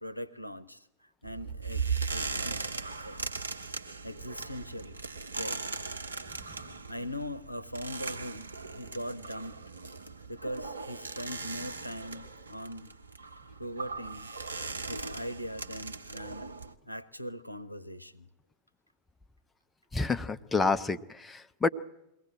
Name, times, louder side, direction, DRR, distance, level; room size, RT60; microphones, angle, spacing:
voice 1, 0.0-2.7 3.0-3.2 4.0-5.7 6.9-9.6 10.3-12.9 13.6-14.3 14.8-16.5 16.9-18.3, equal, 90° left, 13 dB, 0.7 m, -41 dB
sound 1, 1.2-16.7, right 4 dB, 75° right, 1.0 m, -38 dB
voice 2, 19.9-21.7, left 3 dB, 10° left, 9 dB, 0.8 m, -29 dB
22.5 x 17.0 x 8.8 m, 0.89 s
figure-of-eight pair, 90°, 0 cm